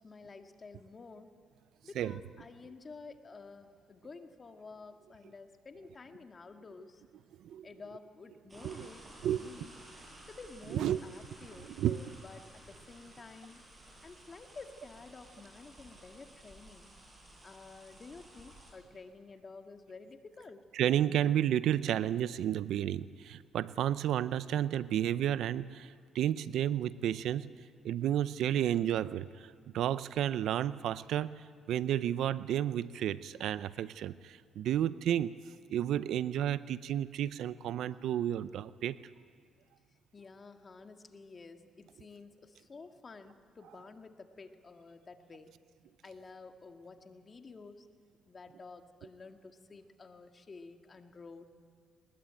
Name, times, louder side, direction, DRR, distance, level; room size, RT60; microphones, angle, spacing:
voice 1, 0.0-1.4 1.8-7.0 7.6-9.7 10.3-13.6 14.0-16.9 17.4-20.7 40.1-45.6 46.0-47.9 48.3-51.4, left 4 dB, 35° left, 1.8 m, -51 dB
sound 1, 8.5-18.7, right 1 dB, 25° right, 7.5 m, -55 dB
voice 2, 9.2-9.5 10.7-11.0 11.7-12.0 20.7-27.5 27.8-35.3 35.7-39.0, right 11 dB, 80° right, 0.6 m, -32 dB
21.0 x 20.5 x 9.0 m
cardioid pair, 90°, 0 cm